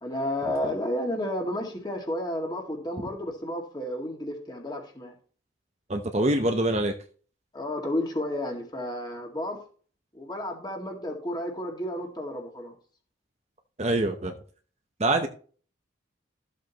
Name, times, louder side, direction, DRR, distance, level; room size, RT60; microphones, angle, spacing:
voice 1, 0.0-5.1 7.5-9.6 10.1-12.7, left 1 dB, 20° left, 1 dB, 2.1 m, -32 dB
voice 2, 5.9-6.9 13.8-14.4 15.0-15.3, right 1 dB, 35° right, 5 dB, 0.8 m, -25 dB
13.5 x 7.7 x 3.0 m, 0.42 s
head